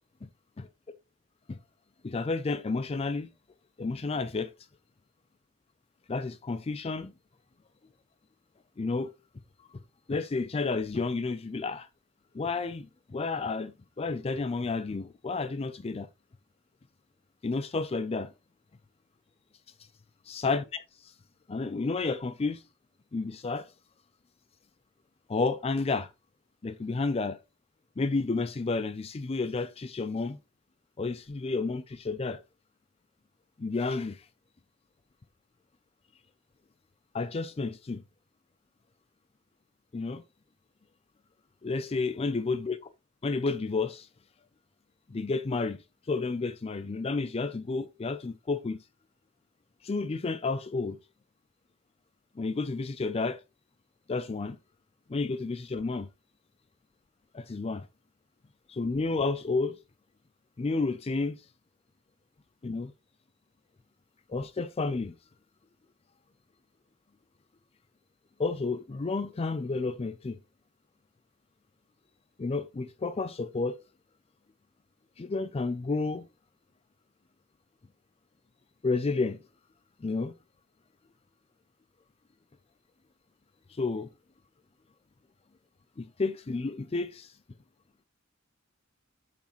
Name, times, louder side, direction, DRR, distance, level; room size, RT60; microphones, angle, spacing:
voice 1, 2.0-3.3 3.8-4.5 6.1-7.1 8.8-9.1 10.1-11.9 12.3-16.1 17.4-18.3 20.3-21.1 21.5-22.6 23.1-23.7 25.3-26.1 26.6-27.4 28.0-30.4 31.0-32.4 33.6-34.3 37.1-38.0 39.9-40.2 41.6-42.8 43.2-44.1 45.1-48.8 49.8-51.0 52.4-53.4 54.1-54.6 55.1-56.1 57.3-57.9 58.7-59.8 60.6-61.5 62.6-62.9 64.3-65.1 68.4-70.4 72.4-73.8 75.2-76.3 78.8-79.4 80.0-80.3 83.7-84.1 86.0-87.4, left 3 dB, 30° left, 0.4 m, -31 dB
8.3 x 5.9 x 3.0 m
head